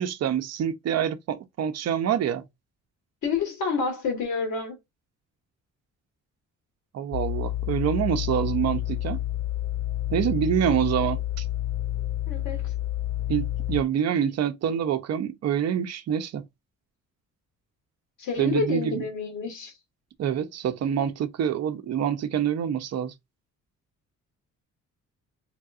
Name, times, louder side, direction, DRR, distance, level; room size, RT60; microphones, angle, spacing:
voice 1, 0.0-2.4 6.9-9.2 10.1-11.5 13.3-16.4 18.4-19.0 20.2-23.1, right 9 dB, 60° right, 0.6 m, -26 dB
voice 2, 3.2-4.8 12.3-12.7 18.2-19.7, left 4 dB, 75° left, 1.7 m, -29 dB
sound 1, 7.1-13.8, left 14 dB, 40° left, 0.4 m, -29 dB
3.4 x 2.5 x 2.4 m
cardioid pair, 90°, 30 cm